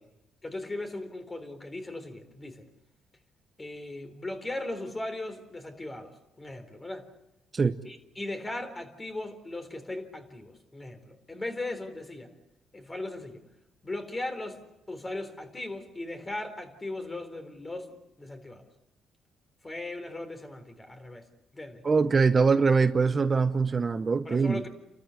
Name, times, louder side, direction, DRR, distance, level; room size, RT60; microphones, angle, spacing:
voice 1, 0.4-2.7 3.6-7.1 7.8-12.3 12.7-13.4 13.8-14.6 14.9-18.7 19.6-21.3 21.5-21.8 24.2-24.7, left 2 dB, 20° left, 4.0 m, -38 dB
voice 2, 21.8-24.6, right 4 dB, 35° right, 1.0 m, -23 dB
30.0 x 13.5 x 9.8 m
cardioid pair, 90°, 0 cm